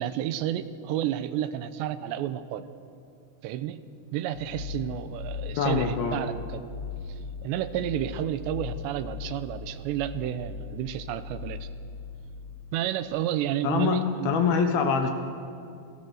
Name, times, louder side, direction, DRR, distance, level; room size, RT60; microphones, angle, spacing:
voice 1, 0.0-2.7 3.4-3.8 4.1-6.6 7.4-11.7 12.7-14.3, right 11 dB, 85° right, 12 dB, 3.0 m, -31 dB
sound 1, 4.3-12.6, left 5 dB, 85° left, 1.3 m, -39 dB
voice 2, 5.6-6.2 13.6-15.1, left 6 dB, 65° left, 5 dB, 2.7 m, -24 dB
28.5 x 18.0 x 6.4 m, 2.4 s
omnidirectional pair, 5.1 m